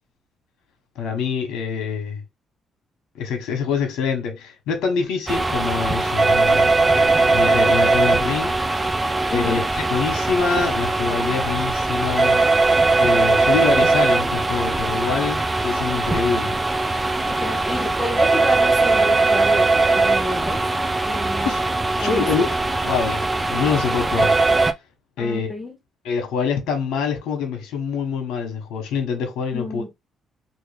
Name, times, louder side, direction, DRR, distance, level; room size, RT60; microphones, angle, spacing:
voice 1, 0.9-2.2 3.1-8.6 9.3-12.4 13.0-16.5 21.4-21.6 22.0-22.6 22.8-24.3 25.2-25.5 26.0-29.8, left 5 dB, 85° left, 1.0 m, -25 dB
sound 1, 5.3-24.7, right 3 dB, 20° right, 0.5 m, -20 dB
voice 2, 9.3-9.6 16.0-16.2 17.2-20.6 21.1-21.6 22.0-22.4 25.2-25.7 29.5-29.9, left 1 dB, 15° left, 1.4 m, -30 dB
3.0 x 2.7 x 3.2 m
cardioid pair, 90°, 0 cm